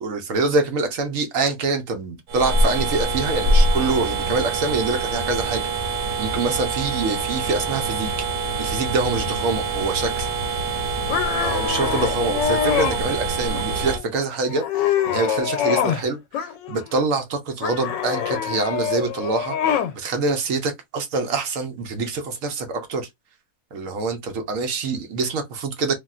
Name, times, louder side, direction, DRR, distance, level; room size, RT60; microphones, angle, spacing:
voice 1, 0.0-5.7 6.2-8.1 8.6-10.3 11.4-23.1 23.7-25.9, right 3 dB, 65° right, 0.9 m, -25 dB
sound 1, 2.3-14.0, right 2 dB, 85° right, 1.4 m, -24 dB
sound 2, 11.1-13.0 13.5-14.0 14.4-16.0 16.3-17.0 17.6-19.9, left 9 dB, 85° left, 1.3 m, -25 dB
3.4 x 2.4 x 2.4 m
omnidirectional pair, 1.9 m